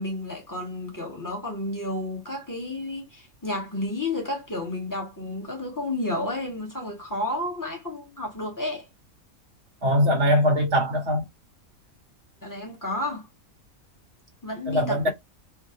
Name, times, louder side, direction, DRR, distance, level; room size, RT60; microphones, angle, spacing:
voice 1, 0.0-8.9 12.4-13.2 14.4-15.1, left 1 dB, 15° left, 1.0 m, -31 dB
voice 2, 9.8-11.2 14.7-15.1, equal, 55° right, 1.2 m, -21 dB
3.5 x 2.2 x 2.6 m
omnidirectional pair, 1.5 m